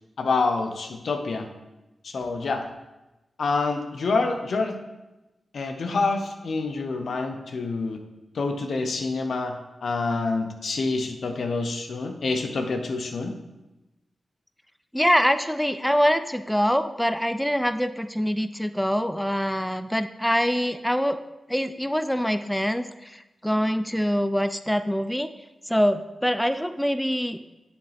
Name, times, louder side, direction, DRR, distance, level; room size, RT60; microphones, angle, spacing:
voice 1, 0.2-1.5 2.0-2.6 3.4-4.8 5.5-8.0 8.3-13.3, left 3 dB, 75° left, 5 dB, 0.8 m, -27 dB
voice 2, 14.9-21.2 21.5-25.3 25.7-27.5, equal, 5° left, 10 dB, 0.4 m, -24 dB
7.8 x 6.7 x 3.4 m, 1.0 s
cardioid pair, 45°, 0 cm